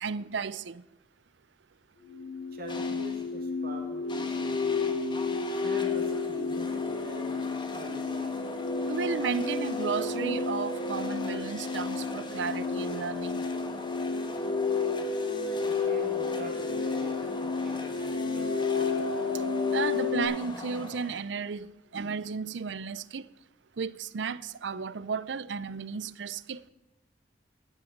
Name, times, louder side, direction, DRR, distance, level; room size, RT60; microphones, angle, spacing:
voice 1, 0.0-0.8 8.9-13.4 19.7-21.7 21.9-23.2 23.8-26.6, right 5 dB, 70° right, 0.5 m, -33 dB
sound 1, 2.0-20.2, left 4 dB, 90° left, 3.6 m, -31 dB
voice 2, 2.5-5.0 5.6-8.4 15.6-19.2, right 1 dB, 55° right, 2.5 m, -45 dB
sound 2, 2.7-3.3 4.1-21.4, left 2 dB, 25° left, 1.6 m, -41 dB
12.0 x 11.0 x 7.3 m
head